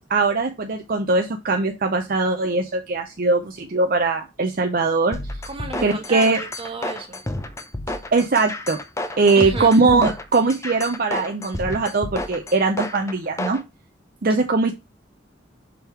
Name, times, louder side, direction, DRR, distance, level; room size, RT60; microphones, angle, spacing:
voice 1, 0.1-5.2 5.8-6.4 8.1-8.8 9.2-13.6 14.2-14.7, right 3 dB, 50° right, 0.6 m, -20 dB
sound 1, 5.1-13.6, left 1 dB, 15° left, 0.6 m, -31 dB
voice 2, 5.5-7.2 9.4-9.7, right 3 dB, 30° right, 1.3 m, -32 dB
6.2 x 3.5 x 4.5 m
head